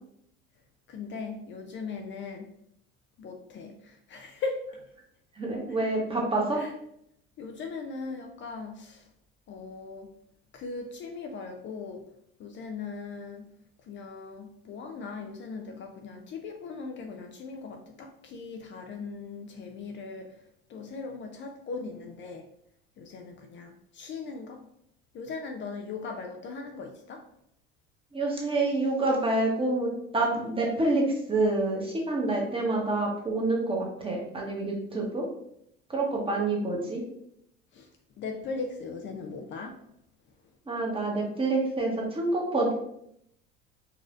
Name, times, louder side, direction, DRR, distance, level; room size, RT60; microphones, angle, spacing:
voice 1, 0.9-2.5 3.2-4.8 6.5-6.7 7.4-9.1 9.5-10.1 10.5-12.1 12.4-13.5 13.8-20.4 20.7-22.5 23.0-24.6 25.1-27.3 37.7-37.9 38.2-39.8 40.4-40.5, left 4 dB, 40° left, 3 dB, 0.4 m, -39 dB
voice 2, 5.3-6.6 28.1-35.3 35.9-37.0 40.7-42.7, right 2 dB, 20° right, -1 dB, 1.1 m, -27 dB
4.1 x 2.5 x 2.5 m, 0.73 s
hypercardioid pair, 85°, 29 cm